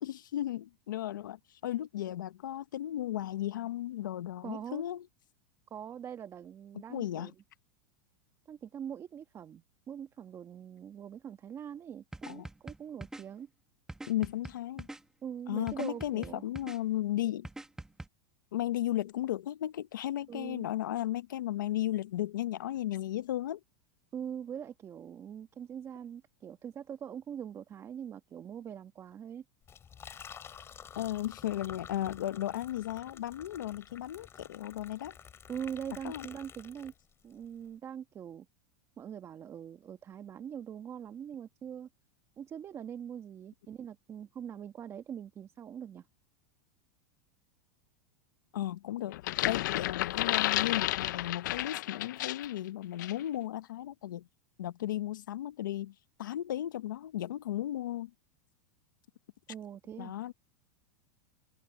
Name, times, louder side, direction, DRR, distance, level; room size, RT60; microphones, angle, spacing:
voice 1, 0.0-5.1 6.9-7.3 12.3-12.5 14.1-14.9 15.5-17.5 18.5-23.6 31.0-35.2 36.0-36.3 48.5-49.2 49.5-54.3 54.6-58.1 60.0-60.3, left 13 dB, 90° left, 1.0 m, -35 dB
voice 2, 4.4-4.8 5.7-7.3 8.5-13.5 15.2-16.5 20.3-20.7 24.1-29.4 35.5-36.9 37.2-38.4 39.0-41.9 42.4-46.0 59.5-60.1, right 8 dB, 25° right, 1.7 m, -43 dB
sound 1, 12.1-13.2 13.9-15.0 15.7-16.8 17.4-18.1, right 2 dB, 5° right, 1.3 m, -43 dB
Liquid, 29.6-37.3, left 8 dB, 25° left, 3.6 m, -50 dB
sound 2, 49.1-52.6 53.0-53.2, left 16 dB, 75° left, 0.6 m, -32 dB
supercardioid pair, 125°, 10 cm